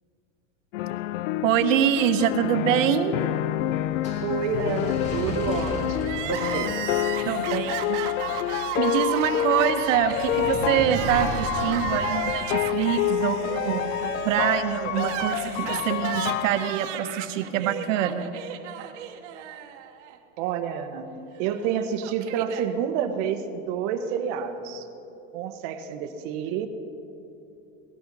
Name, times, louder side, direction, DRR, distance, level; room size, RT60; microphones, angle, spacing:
sound 1, 0.7-16.7, left 12 dB, 90° left, 0.5 m, -28 dB
voice 1, 1.4-3.2 7.2-8.0 8.8-18.3, right 10 dB, 85° right, 8 dB, 1.2 m, -25 dB
sound 2, 2.9-16.0, equal, 20° left, 2.0 m, -38 dB
voice 2, 4.2-6.8 20.4-21.1 21.4-24.9 25.3-26.7, right 7 dB, 45° right, 6 dB, 1.3 m, -29 dB
Crying sobbing, 6.0-20.2 20.4-20.5 21.5-22.7, right 10 dB, 70° right, 1.3 m, -34 dB
18.5 x 12.5 x 5.5 m, 2.9 s
supercardioid pair, 165°, 37 cm